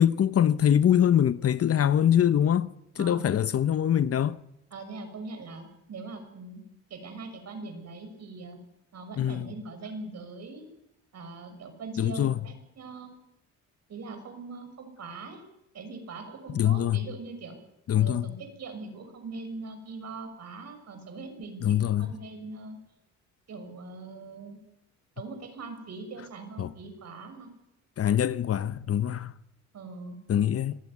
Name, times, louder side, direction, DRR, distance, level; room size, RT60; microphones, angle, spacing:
voice 1, 0.0-4.4 9.2-9.5 12.0-12.3 16.5-17.0 17.9-18.3 21.6-22.1 26.6-26.7 28.0-29.3 30.3-30.8, left 10 dB, 50° left, 0.9 m, -24 dB
voice 2, 4.7-6.6 6.9-8.6 8.9-10.6 11.1-13.2 13.9-15.4 15.7-17.6 17.9-22.8 23.5-24.6 25.2-27.5 29.7-30.2, right 3 dB, 60° right, 6.8 m, -41 dB
25.5 x 15.5 x 9.7 m
cardioid pair, 90°, 30 cm